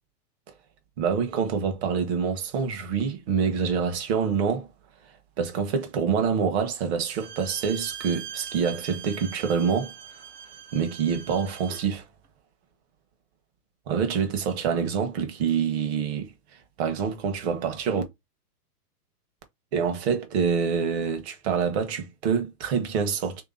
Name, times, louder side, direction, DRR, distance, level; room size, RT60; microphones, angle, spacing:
voice 1, 1.0-4.7 5.4-9.9 10.7-12.0 13.9-16.3 16.8-18.0 19.7-23.4, right 6 dB, 45° right, 1.1 m, -26 dB
Bowed string instrument, 7.1-11.9, right 9 dB, 70° right, 1.1 m, -42 dB
3.2 x 3.0 x 3.7 m
hypercardioid pair, 145°, 47 cm